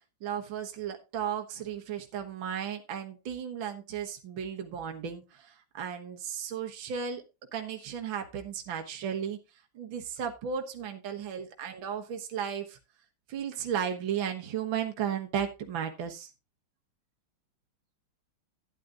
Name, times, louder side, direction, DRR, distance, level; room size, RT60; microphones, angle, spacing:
voice 1, 0.2-7.3 7.5-9.4 9.7-12.8 13.3-16.3, right 8 dB, 65° right, 4 dB, 2.0 m, -35 dB
12.5 x 10.5 x 2.5 m, 0.26 s
omnidirectional pair, 2.3 m